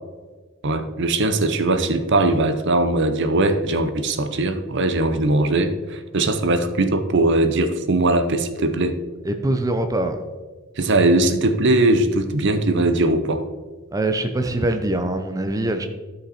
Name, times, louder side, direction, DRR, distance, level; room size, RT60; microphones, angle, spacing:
voice 1, 0.6-9.0 10.8-13.4, right 2 dB, 60° right, 9 dB, 0.8 m, -20 dB
voice 2, 9.2-10.2 13.9-15.9, right 1 dB, 15° right, 6 dB, 0.6 m, -23 dB
12.5 x 5.8 x 4.2 m, 1.3 s
head